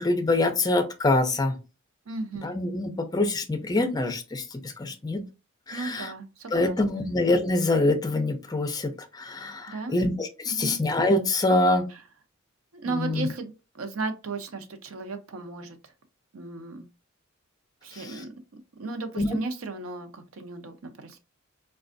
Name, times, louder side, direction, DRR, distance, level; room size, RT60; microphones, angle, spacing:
voice 1, 0.0-1.6 2.4-5.2 5.7-6.1 6.5-11.9 12.9-13.3 17.9-18.2 19.2-19.4, left 2 dB, 20° left, 0.5 m, -25 dB
voice 2, 2.1-2.6 5.7-7.1 9.7-10.0 10.5-10.8 11.9-12.0 12.7-15.8 16.3-16.9 17.8-18.3 18.8-21.2, right 3 dB, 85° right, 0.6 m, -35 dB
4.2 x 2.3 x 2.5 m
head